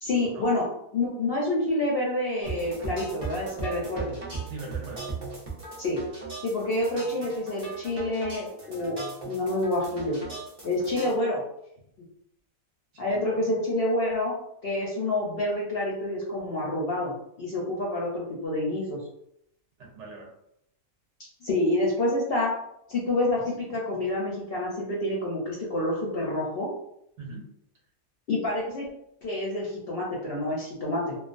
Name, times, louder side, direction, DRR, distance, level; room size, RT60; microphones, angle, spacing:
voice 1, 0.0-0.7 0.9-4.2 5.8-6.0 6.4-9.0 9.2-10.2 10.6-11.4 13.0-14.3 14.6-19.0 21.4-22.5 22.9-26.7 28.3-28.9 29.2-31.2, left 1 dB, 60° left, -4 dB, 0.6 m, -28 dB
sound 1, 2.4-11.1, right 4 dB, 45° right, 0.4 m, -38 dB
voice 2, 4.5-5.0 12.9-13.4 19.8-20.3 27.2-27.5, right 3 dB, 65° right, -1 dB, 0.9 m, -41 dB
2.3 x 2.3 x 2.4 m, 0.76 s
omnidirectional pair, 1.4 m